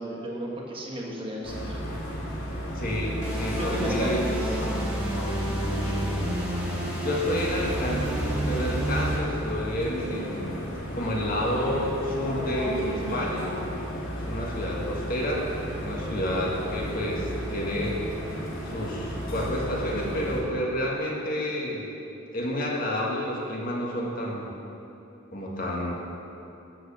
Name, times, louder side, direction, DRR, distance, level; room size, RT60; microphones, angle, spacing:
voice 1, 0.0-1.8 3.6-4.5, right 1 dB, 25° right, -2 dB, 1.4 m, -34 dB
sound 1, 1.4-20.4, equal, 85° left, 2.7 m, -33 dB
voice 2, 2.7-4.3 7.0-10.6 10.9-13.5 14.1-15.5 15.7-18.0 18.6-21.9 22.3-24.5 25.3-25.9, equal, 45° left, -3 dB, 1.7 m, -29 dB
sound 2, 3.2-9.1, right 1 dB, 5° right, 2.1 m, -31 dB
11.5 x 5.1 x 7.3 m, 2.8 s
head